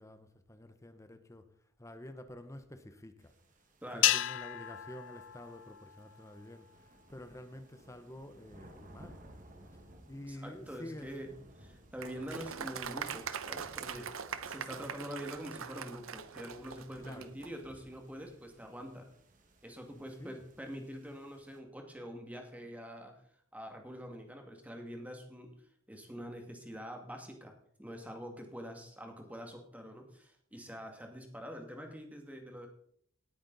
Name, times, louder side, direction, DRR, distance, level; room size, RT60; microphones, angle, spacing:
voice 1, 0.0-1.5 1.8-3.3 3.9-9.2 10.1-11.2 17.0-17.4 19.9-20.5, left 1 dB, 15° left, 9 dB, 0.9 m, -49 dB
sound 1, 3.2-21.6, right 1 dB, 40° right, 1.8 m, -60 dB
voice 2, 3.8-4.2 10.3-11.3 11.6-19.1 19.6-23.1 23.5-25.5 25.9-32.7, equal, 5° right, 3 dB, 2.1 m, -45 dB
sound 2, 4.0-6.5, left 14 dB, 65° left, 0.5 m, -33 dB
Applause, 12.0-17.5, right 7 dB, 85° right, 0.8 m, -42 dB
18.5 x 8.7 x 4.0 m, 0.64 s
head